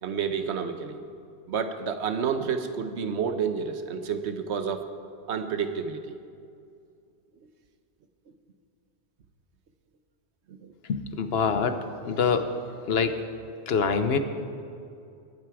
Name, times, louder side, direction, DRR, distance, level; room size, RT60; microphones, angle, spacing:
voice 1, 0.0-1.0 1.5-4.8 5.3-6.1 10.5-10.7, right 6 dB, 80° right, 9 dB, 1.1 m, -30 dB
voice 2, 10.9-11.8 12.0-12.5 12.9-13.1 13.7-14.2, left 6 dB, 65° left, 9 dB, 1.0 m, -24 dB
19.5 x 9.3 x 4.8 m, 2.5 s
omnidirectional pair, 1.1 m